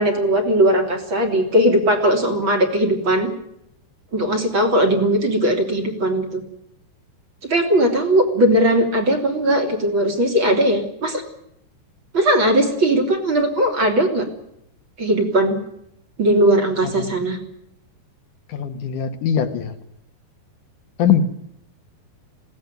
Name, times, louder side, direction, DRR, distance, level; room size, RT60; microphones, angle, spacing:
voice 1, 0.0-3.3 4.1-6.4 7.4-11.2 12.1-14.2 15.0-15.6 16.2-17.4, right 1 dB, 30° right, 4 dB, 3.4 m, -18 dB
voice 2, 18.5-19.7 21.0-21.2, left 8 dB, 60° left, 8 dB, 2.6 m, -21 dB
21.0 x 17.5 x 9.3 m, 0.78 s
omnidirectional pair, 5.0 m